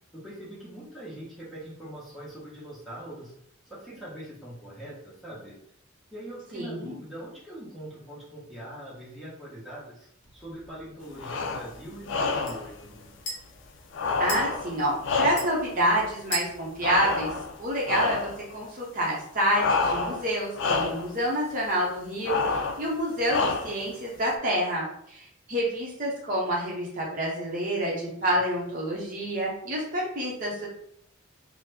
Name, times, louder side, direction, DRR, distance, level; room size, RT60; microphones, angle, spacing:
voice 1, 0.1-3.3 3.7-5.5 6.1-13.2, right 1 dB, ahead, -8 dB, 0.9 m, -42 dB
voice 2, 6.5-7.0 14.2-17.3 17.6-30.7, equal, 40° right, -4 dB, 0.7 m, -28 dB
sound 1, 10.2-18.0, equal, 40° left, 1.0 m, -42 dB
sound 2, 11.2-11.7 12.1-12.7 13.9-15.7 16.8-17.6 17.9-18.4 19.5-20.3 20.5-21.1 22.2-22.9 23.3-23.9, left 4 dB, 65° left, 0.3 m, -28 dB
3.1 x 2.0 x 3.2 m, 0.71 s
head